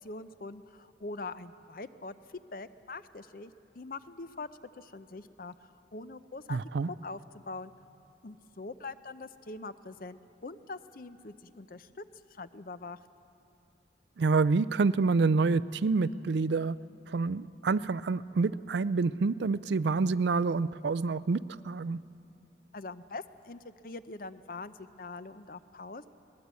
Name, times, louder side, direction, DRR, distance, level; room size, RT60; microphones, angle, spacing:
voice 1, 0.0-2.1 2.5-4.5 4.8-6.6 7.0-7.7 8.2-12.0 12.3-13.0 22.7-26.0, left 3 dB, 50° left, 13 dB, 0.6 m, -43 dB
voice 2, 6.5-6.9 14.2-16.8 17.1-22.0, right 4 dB, 70° right, 17 dB, 0.4 m, -27 dB
22.0 x 18.5 x 8.3 m, 2.8 s
head